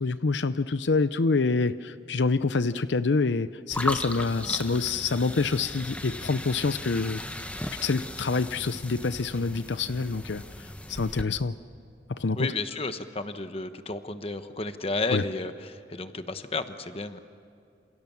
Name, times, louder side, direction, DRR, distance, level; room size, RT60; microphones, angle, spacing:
voice 1, 0.0-7.2 7.8-10.4 10.9-11.6 12.1-12.5 15.1-15.2, left 4 dB, 75° left, 13 dB, 0.6 m, -26 dB
sound 1, 3.7-11.2, left 1 dB, 5° left, 1.1 m, -36 dB
voice 2, 12.4-17.2, left 3 dB, 30° left, 9 dB, 1.2 m, -32 dB
28.5 x 28.0 x 7.2 m, 2.5 s
head